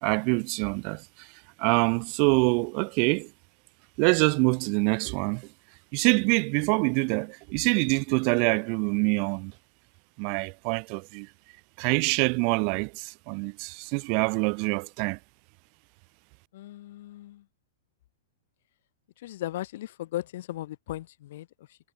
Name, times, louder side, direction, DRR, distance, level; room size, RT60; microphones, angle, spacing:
voice 1, 0.0-1.3 1.6-3.3 4.0-5.5 5.9-9.5 10.2-11.3 11.8-15.2, right 39 dB, 30° right, 0.6 m, -25 dB
voice 2, 16.5-17.5 19.2-21.8, left 14 dB, 50° left, 4.0 m, -37 dB
supercardioid pair, 175°, 0 cm